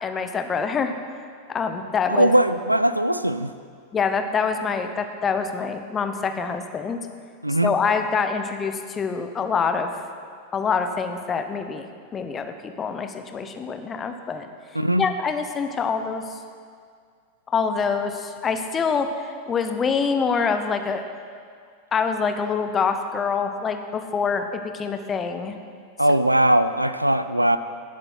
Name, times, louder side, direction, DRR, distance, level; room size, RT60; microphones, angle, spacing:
voice 1, 0.0-0.9 1.5-2.3 3.9-7.0 7.6-9.9 10.5-14.5 15.0-16.4 17.5-19.1 19.5-21.1 21.9-25.6 26.1-26.2, left 5 dB, 20° left, 7 dB, 0.9 m, -25 dB
voice 2, 2.2-3.5 7.4-7.7 14.8-15.1 26.0-27.6, right 1 dB, 85° right, 12 dB, 0.4 m, -20 dB
18.0 x 7.9 x 4.4 m, 2.1 s
figure-of-eight pair, 90°, 0 cm